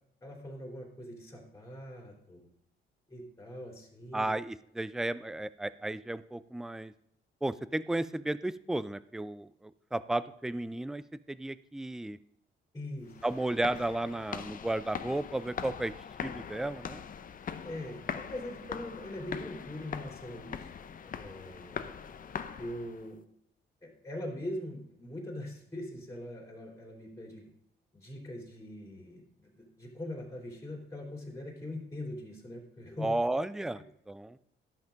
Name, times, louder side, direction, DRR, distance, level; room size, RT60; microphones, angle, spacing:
voice 1, 0.2-2.5 3.1-4.4 12.7-13.1 13.5-13.8 17.6-20.7 21.0-21.8 22.6-23.2 23.8-27.4 27.9-33.1, left 1 dB, 15° left, 0 dB, 3.1 m, -42 dB
voice 2, 4.1-6.9 7.4-11.0 11.3-12.2 13.2-15.9 16.2-17.0 33.0-34.4, right 1 dB, ahead, 16 dB, 0.3 m, -33 dB
sound 1, 13.1-23.1, left 7 dB, 45° left, 0.7 m, -42 dB
11.5 x 6.0 x 5.1 m, 0.72 s
cardioid pair, 90°, 20 cm